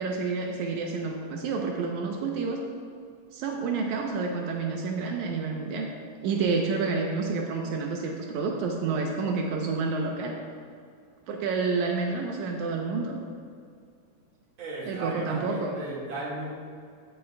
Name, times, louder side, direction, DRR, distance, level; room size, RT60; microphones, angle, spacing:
voice 1, 0.0-2.6 3.3-5.9 6.2-10.4 11.3-13.2 14.9-15.8, right 4 dB, 85° right, 1 dB, 2.1 m, -29 dB
voice 2, 14.6-16.5, right 2 dB, 45° right, -5 dB, 2.4 m, -36 dB
17.0 x 6.9 x 2.2 m, 2.3 s
omnidirectional pair, 3.3 m